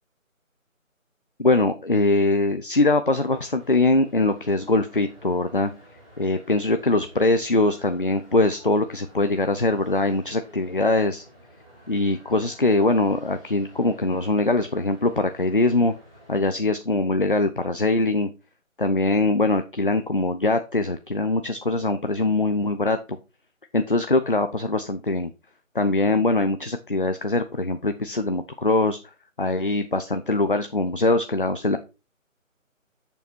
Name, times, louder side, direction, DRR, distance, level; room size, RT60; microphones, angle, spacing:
voice 1, 1.4-5.7 6.2-11.2 11.9-15.9 16.3-18.3 18.8-23.0 23.7-25.3 25.7-29.0 29.4-31.8, left 2 dB, 40° left, 8 dB, 0.6 m, -22 dB
sound 1, 3.2-16.4, equal, 5° right, 1.3 m, -51 dB
8.3 x 7.0 x 4.3 m, 0.29 s
figure-of-eight pair, 170°, 41 cm